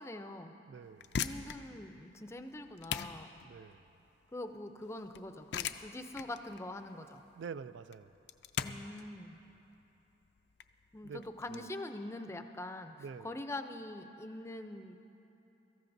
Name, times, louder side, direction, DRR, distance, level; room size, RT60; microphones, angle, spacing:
voice 1, 0.0-0.5 1.2-3.4 4.3-7.2 8.6-9.4 10.9-15.0, left 1 dB, 15° left, 7 dB, 0.5 m, -44 dB
voice 2, 0.7-1.1 3.4-3.8 7.4-8.1 11.0-11.2 11.5-11.7 13.0-13.3, right 6 dB, 90° right, 14 dB, 0.3 m, -46 dB
sound 1, 0.8-11.6, left 7 dB, 70° left, 0.4 m, -42 dB
23.0 x 14.0 x 2.6 m, 3.0 s
head